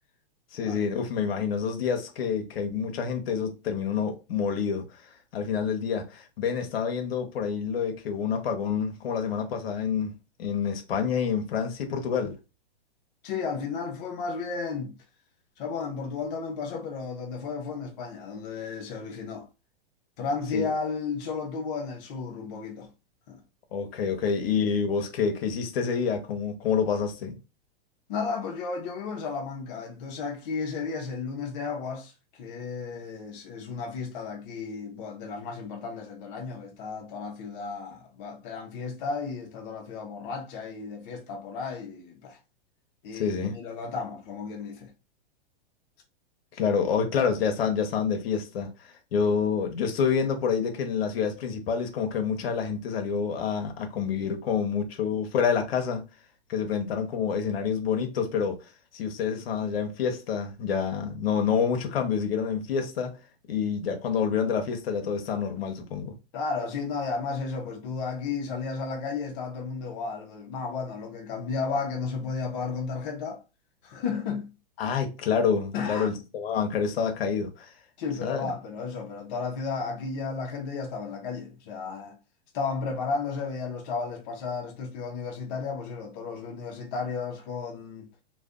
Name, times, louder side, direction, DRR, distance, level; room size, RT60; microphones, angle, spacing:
voice 1, 0.5-4.8 5.3-10.1 10.4-12.3 20.5-20.7 23.7-27.4 43.1-43.6 46.6-56.1 56.5-63.1 63.5-66.1 74.8-77.7 78.2-78.5, left 6 dB, 75° left, 0.8 m, -28 dB
voice 2, 13.2-15.0 15.6-19.5 20.2-22.9 23.3-23.4 28.1-42.4 43.0-44.9 66.3-73.4 73.8-74.5 75.7-76.1 78.0-82.2 82.5-88.1, left 4 dB, 45° left, 0.6 m, -33 dB
2.5 x 2.2 x 2.4 m
hypercardioid pair, 145°, 30 cm